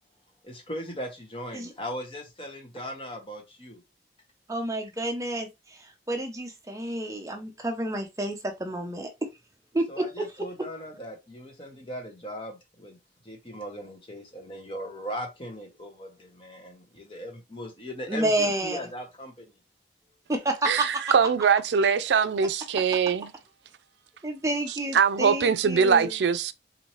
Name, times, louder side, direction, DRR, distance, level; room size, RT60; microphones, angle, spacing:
voice 1, 0.4-3.8 9.9-13.0 13.2-19.5, equal, 30° left, 1.0 m, -38 dB
voice 2, 4.5-9.3 9.7-10.3 18.1-18.8 20.3-21.0 24.2-26.1, right 1 dB, 20° right, 0.6 m, -30 dB
voice 3, 20.7-23.3 24.9-26.5, right 6 dB, 85° right, 0.4 m, -22 dB
4.1 x 2.7 x 3.0 m
head